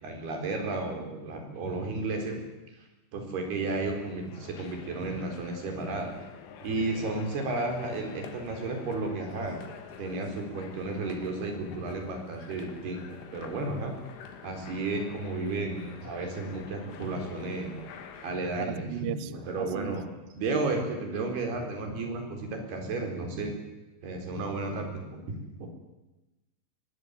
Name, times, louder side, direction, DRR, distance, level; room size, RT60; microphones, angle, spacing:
voice 1, 0.0-2.4 2.8-2.9 3.1-6.1 6.6-9.6 10.0-14.0 14.4-17.7 18.2-18.9 19.2-20.0 20.3-23.5 24.0-25.7, right 3 dB, 55° right, 4 dB, 6.0 m, -33 dB
sound 1, 3.7-18.4, left 7 dB, 90° left, 4.7 m, -47 dB
voice 2, 18.6-19.2 19.6-20.0, right 14 dB, 85° right, 14 dB, 2.1 m, -35 dB
22.5 x 20.0 x 9.7 m, 1.1 s
omnidirectional pair, 5.5 m